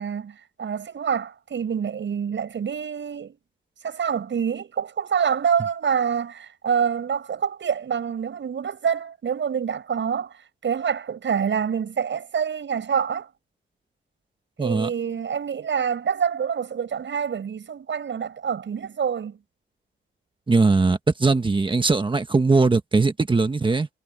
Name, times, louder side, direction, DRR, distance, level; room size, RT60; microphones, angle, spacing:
voice 1, 0.0-3.4 3.8-13.3 14.6-19.4, right 7 dB, 65° right, 7.9 m, -26 dB
voice 2, 14.6-14.9 20.5-23.9, right 3 dB, 25° right, 1.3 m, -20 dB
wide cardioid pair, 140°, 21 cm